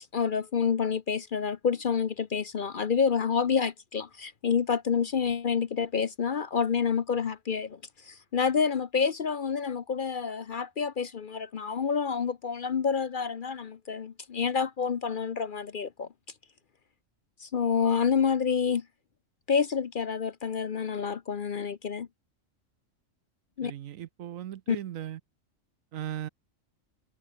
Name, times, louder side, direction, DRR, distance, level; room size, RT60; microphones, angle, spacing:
voice 1, 0.1-16.1 17.4-18.8 19.5-22.1 23.6-23.7 24.7-24.8, left 6 dB, 45° left, 0.7 m, -28 dB
voice 2, 23.6-25.2 25.9-26.3, right 11 dB, 80° right, 1.1 m, -37 dB
omnidirectional pair, 1.4 m